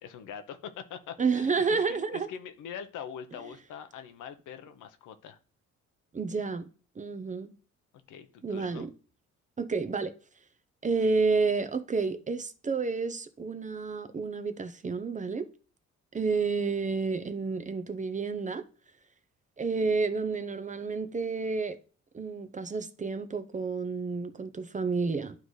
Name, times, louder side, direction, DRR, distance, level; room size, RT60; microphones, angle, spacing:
voice 1, 0.0-5.4 8.1-8.9, left 8 dB, 85° left, 0.9 m, -43 dB
voice 2, 1.2-2.3 6.1-6.7 7.0-7.5 8.4-8.9 9.6-10.1 10.8-15.5 16.1-18.6 19.6-21.8 22.1-25.3, right 4 dB, 25° right, 0.6 m, -30 dB
11.5 x 3.9 x 3.2 m
cardioid pair, 90°, 30 cm